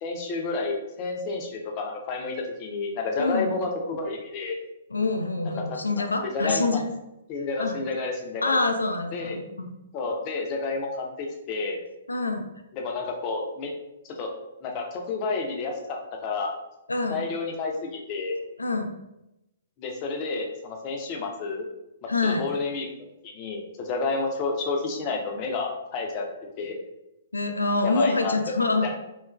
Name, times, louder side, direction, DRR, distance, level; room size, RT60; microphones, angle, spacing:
voice 1, 0.0-4.6 6.2-6.8 7.3-8.6 9.1-9.4 9.9-11.8 12.7-13.7 14.1-14.3 14.6-16.5 17.1-18.4 19.8-21.7 22.2-22.9 23.2-26.3 26.6-26.8 27.8-28.5 28.8-28.9, left 3 dB, 35° left, 1 dB, 0.5 m, -30 dB
voice 2, 3.2-3.5 4.9-6.9 7.6-7.8 8.4-9.7 12.1-12.5 16.9-17.2 18.6-18.9 22.1-22.5 27.3-28.9, left 3 dB, 90° left, 6 dB, 0.4 m, -26 dB
2.9 x 2.4 x 2.2 m, 0.90 s
figure-of-eight pair, 125°, 0 cm